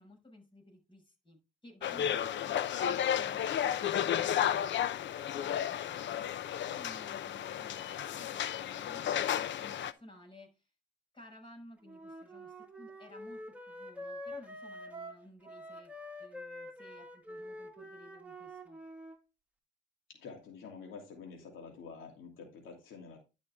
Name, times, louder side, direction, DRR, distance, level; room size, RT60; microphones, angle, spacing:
voice 1, 0.0-4.7 5.4-6.1 6.7-10.7 11.1-15.9 16.2-18.8, left 1 dB, 25° left, 1 dB, 6.3 m, -56 dB
sound 1, 1.8-9.9, left 10 dB, 65° left, 0.8 m, -33 dB
Wind instrument woodwind instrument, 11.9-19.2, equal, 5° right, 2.7 m, -46 dB
voice 2, 20.1-23.2, left 5 dB, 85° left, 1 dB, 2.9 m, -49 dB
11.5 x 6.1 x 3.6 m, 0.27 s
cardioid pair, 90°, 20 cm